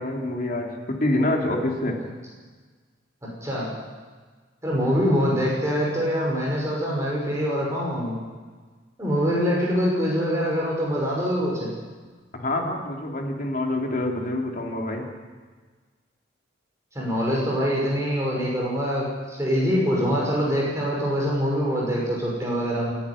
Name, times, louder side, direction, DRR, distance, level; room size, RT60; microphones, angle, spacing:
voice 1, 0.0-2.0 12.3-15.1, left 1 dB, 45° left, 1 dB, 3.1 m, -26 dB
voice 2, 4.6-8.2 9.0-11.7 16.9-22.9, equal, 15° right, -4 dB, 5.8 m, -24 dB
28.0 x 10.5 x 10.0 m, 1.4 s
head